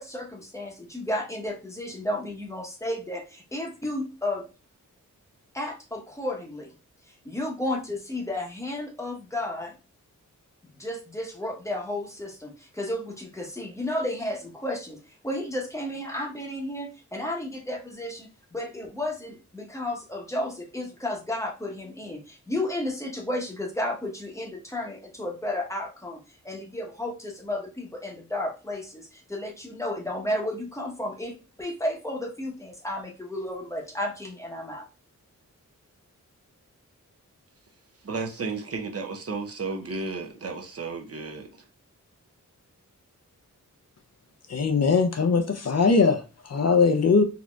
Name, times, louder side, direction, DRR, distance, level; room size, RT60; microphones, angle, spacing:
voice 1, 0.0-4.4 5.5-6.7 7.2-9.7 10.8-26.2 26.4-34.8, left 1 dB, 10° left, 0.9 m, -32 dB
voice 2, 38.0-41.5, right 4 dB, 50° right, 0.7 m, -33 dB
voice 3, 44.5-47.2, left 4 dB, 55° left, 0.5 m, -21 dB
4.1 x 2.7 x 2.3 m
wide cardioid pair, 115°, 32 cm